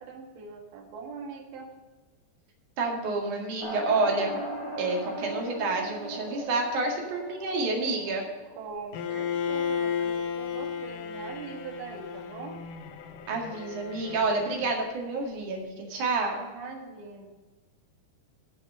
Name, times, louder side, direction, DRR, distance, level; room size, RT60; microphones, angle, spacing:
voice 1, 0.0-1.7 8.5-12.6 16.3-17.3, right 4 dB, 80° right, 2 dB, 3.8 m, -42 dB
voice 2, 2.8-4.4 4.8-8.3 13.3-16.4, right 3 dB, 55° right, 0 dB, 3.1 m, -29 dB
sound 1, 3.6-8.8, right 2 dB, 10° left, 1.5 m, -37 dB
Bowed string instrument, 8.9-14.9, left 7 dB, 75° left, 2.0 m, -34 dB
12.5 x 6.5 x 6.3 m, 1.3 s
omnidirectional pair, 4.9 m